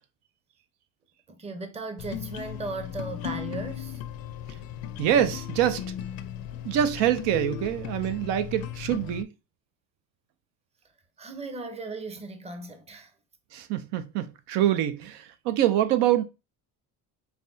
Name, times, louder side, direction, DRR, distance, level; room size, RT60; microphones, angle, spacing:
voice 1, 1.3-4.0 11.2-13.1, right 3 dB, 15° right, 0.6 m, -37 dB
sound 1, 2.0-9.2, left 11 dB, 60° left, 0.5 m, -37 dB
voice 2, 5.0-5.8 6.6-9.3 13.5-16.2, right 11 dB, 75° right, 0.6 m, -25 dB
5.7 x 2.2 x 2.6 m
cardioid pair, 100°, 42 cm